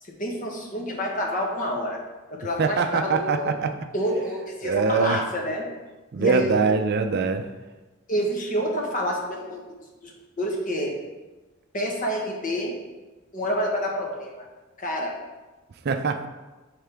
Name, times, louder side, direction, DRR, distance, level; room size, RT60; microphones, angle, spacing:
voice 1, 0.0-2.0 2.3-3.6 3.9-5.7 6.2-6.5 8.1-9.7 10.0-10.1 10.4-10.9 11.7-12.7 13.3-14.4 14.8-15.1, equal, 40° left, -1 dB, 1.2 m, -28 dB
voice 2, 2.6-3.7 4.6-5.2 6.1-7.4 15.8-16.3, right 4 dB, 50° right, 7 dB, 0.4 m, -23 dB
9.3 x 3.7 x 3.4 m, 1.2 s
head